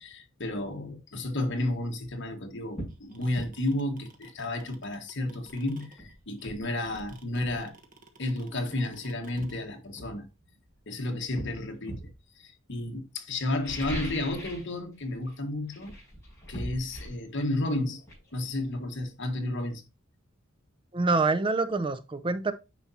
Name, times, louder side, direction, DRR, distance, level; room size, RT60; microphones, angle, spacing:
voice 1, 0.0-7.7 8.2-10.3 10.9-12.1 12.4-15.9 16.5-18.0 18.3-19.8, left 1 dB, 60° left, 1.6 m, -32 dB
sound 1, 2.0-2.1 2.7-3.0 3.4-3.5 5.4-5.5 6.0-7.6 8.7-8.8 9.4-10.8 11.4-12.2 13.5-14.7 15.0-15.4 15.7-19.2 19.5-19.6, equal, 15° left, 5.1 m, -41 dB
sound 2, 2.9-9.6, right 3 dB, 40° right, 1.3 m, -54 dB
voice 2, 20.9-22.5, right 3 dB, 25° right, 0.5 m, -26 dB
9.1 x 5.7 x 2.8 m
head